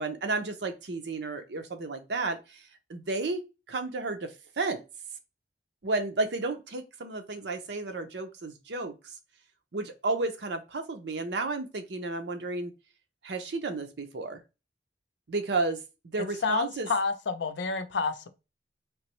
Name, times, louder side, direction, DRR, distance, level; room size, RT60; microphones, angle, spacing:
voice 1, 0.0-2.6 2.9-3.4 3.7-4.8 5.8-8.9 9.7-12.7 13.2-14.4 15.3-15.8 16.1-16.9, right 3 dB, 70° right, 0.7 m, -32 dB
voice 2, 16.4-18.3, left 4 dB, 80° left, 0.5 m, -29 dB
3.3 x 2.9 x 3.1 m
head